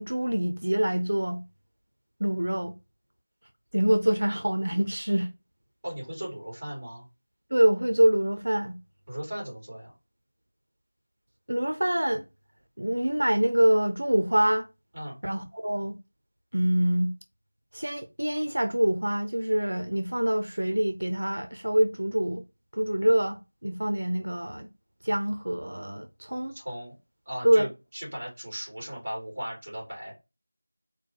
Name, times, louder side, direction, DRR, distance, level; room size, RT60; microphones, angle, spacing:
voice 1, 0.0-1.4 2.2-2.8 3.7-5.3 7.5-8.8 11.5-12.2 12.8-14.7 15.2-16.0 16.5-17.1 17.7-22.4 22.7-24.7 25.0-26.5 27.4-27.7, right 1 dB, 90° right, 0.7 m, -25 dB
voice 2, 5.8-7.1 9.1-9.9 14.9-15.2 26.5-26.9 27.3-30.1, equal, 25° right, 2.7 m, -37 dB
4.3 x 2.3 x 4.4 m
figure-of-eight pair, 180°, 0 cm